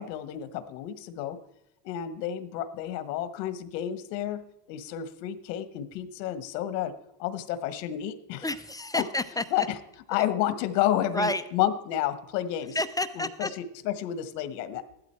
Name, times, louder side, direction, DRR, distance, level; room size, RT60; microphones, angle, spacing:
voice 1, 0.0-1.4 1.8-6.9 7.2-8.4 9.0-9.1 9.5-9.8 10.1-12.8 13.2-14.8, left 11 dB, 85° left, 12 dB, 1.4 m, -30 dB
voice 2, 8.4-9.7 10.2-10.3 11.1-11.4 12.7-13.5, left 1 dB, 10° left, 9 dB, 0.4 m, -30 dB
14.5 x 12.0 x 4.5 m, 0.84 s
supercardioid pair, 120°, 48 cm